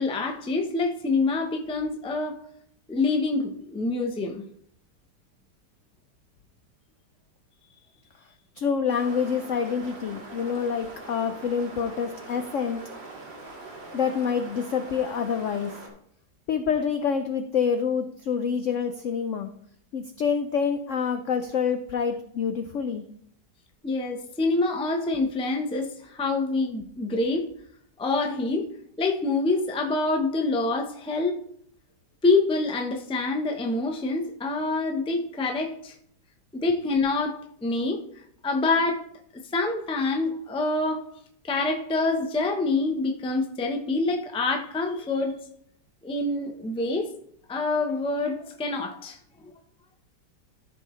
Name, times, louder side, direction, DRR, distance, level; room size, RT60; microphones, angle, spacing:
voice 1, 0.0-2.4 2.9-4.4 23.8-27.5 28.0-28.7 29.0-31.4 32.2-35.9 36.5-38.0 38.4-39.0 39.3-41.1 41.4-45.3 46.0-47.1 47.5-49.5, left 3 dB, 10° left, 3 dB, 0.3 m, -26 dB
voice 2, 8.6-12.8 13.9-15.8 16.5-19.5 19.9-23.0, left 6 dB, 75° left, 8 dB, 0.7 m, -27 dB
sound 1, 8.9-15.9, right 2 dB, 85° right, 2.5 m, -42 dB
13.5 x 5.7 x 3.1 m, 0.67 s
omnidirectional pair, 2.0 m